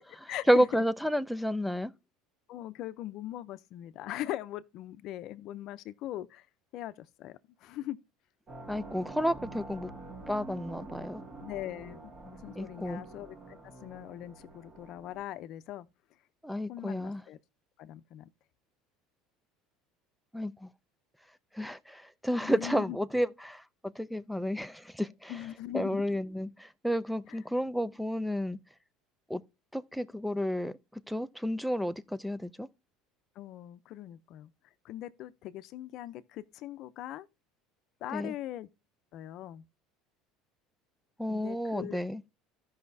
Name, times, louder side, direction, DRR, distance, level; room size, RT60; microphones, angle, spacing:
voice 1, 0.5-1.9 8.7-9.9 10.3-11.2 12.6-13.0 16.4-17.2 20.3-20.7 21.5-25.4 25.7-28.6 29.3-29.4 29.7-32.7 38.1-38.3 41.2-42.2, equal, ahead, 0.4 m, -31 dB
voice 2, 2.5-6.5 6.7-8.0 11.4-13.4 13.6-15.9 16.7-17.4 17.8-18.3 22.4-23.0 25.3-26.0 33.4-34.5 34.8-37.3 38.0-38.7 39.1-39.6 41.3-42.0, left 13 dB, 55° left, 0.6 m, -41 dB
sound 1, 8.5-15.2, right 3 dB, 30° right, 1.6 m, -47 dB
15.0 x 5.6 x 2.7 m
cardioid pair, 140°, 0 cm